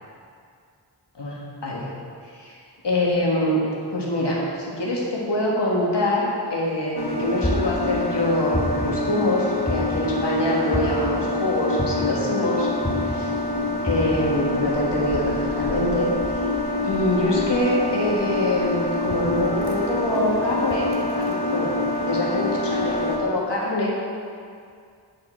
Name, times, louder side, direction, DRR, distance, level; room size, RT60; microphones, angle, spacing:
voice 1, 1.2-1.9 2.4-2.5 2.8-3.6 3.9-12.7 12.9-13.3 13.8-16.1 16.8-21.7 22.0-23.9, left 1 dB, 90° left, -4 dB, 1.5 m, -24 dB
sound 1, 7.0-23.2, left 2 dB, 70° left, 1.3 m, -26 dB
sound 2, 7.4-7.9 8.5-9.0 9.7-10.1 10.7-11.1 11.8-12.2 12.8-13.2 13.9-14.2, left 1 dB, 15° left, 1.2 m, -26 dB
8.3 x 7.6 x 4.3 m, 2.3 s
wide cardioid pair, 55°, 41 cm